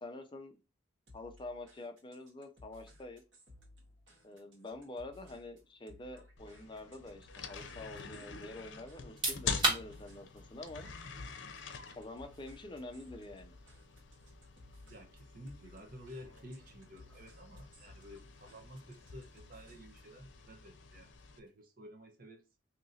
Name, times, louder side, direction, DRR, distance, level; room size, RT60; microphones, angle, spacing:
voice 1, 0.0-0.6 1.1-3.2 4.2-10.9 12.0-13.6, left 2 dB, 25° left, 0.5 m, -47 dB
sound 1, 1.1-20.1, left 1 dB, 85° right, 1.4 m, -60 dB
sound 2, 6.4-21.4, left 5 dB, 80° left, 0.6 m, -46 dB
sound 3, 9.0-21.6, right 2 dB, 25° right, 1.4 m, -43 dB
voice 2, 14.9-22.4, equal, 50° right, 0.8 m, -52 dB
2.8 x 2.6 x 4.0 m
head